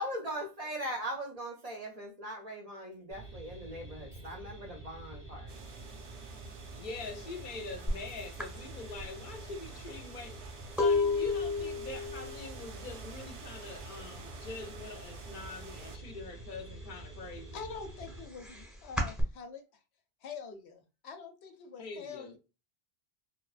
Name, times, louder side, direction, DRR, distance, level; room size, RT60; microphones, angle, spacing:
voice 1, 0.0-5.5, equal, 50° right, 0.5 m, -40 dB
sound 1, 3.1-18.3, right 2 dB, 15° left, 0.5 m, -48 dB
sound 2, 5.5-16.0, right 5 dB, 90° right, 0.8 m, -51 dB
voice 2, 6.7-10.4 10.8-17.6 21.8-22.4, left 3 dB, 60° left, 0.6 m, -44 dB
sound 3, 7.9-8.0 8.4-14.1 14.3-14.8 15.1-16.3 16.7-19.2, left 3 dB, ahead, 0.9 m, -33 dB
voice 3, 17.5-19.6 20.2-22.4, left 5 dB, 90° left, 0.9 m, -45 dB
2.7 x 2.2 x 2.3 m
omnidirectional pair, 1.1 m